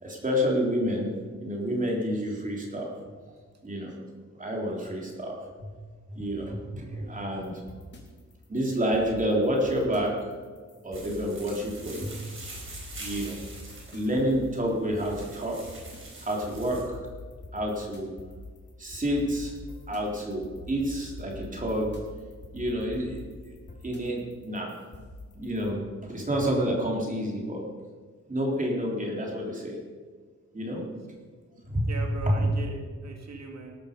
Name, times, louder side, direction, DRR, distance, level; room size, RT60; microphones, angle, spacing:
voice 1, 0.0-1.1 1.4-2.9 3.6-3.9 4.4-5.7 6.1-7.6 8.5-10.1 10.8-12.2 13.0-13.4 13.9-15.6 16.2-17.0 17.5-18.1 18.8-19.5 19.9-21.9 22.5-23.2 23.8-24.8 25.4-27.7 28.3-29.8 30.5-30.8 31.6-31.9 32.2-32.5, equal, 25° right, -2 dB, 3.5 m, -29 dB
voice 2, 6.2-6.5 31.9-33.8, right 3 dB, 65° right, 2 dB, 2.1 m, -40 dB
sound 1, 7.4-25.7, left 2 dB, 40° left, 3.0 m, -45 dB
sound 2, 10.9-16.8, right 2 dB, 45° right, 4.2 m, -45 dB
19.0 x 12.5 x 5.2 m, 1.5 s
wide cardioid pair, 170°, 29 cm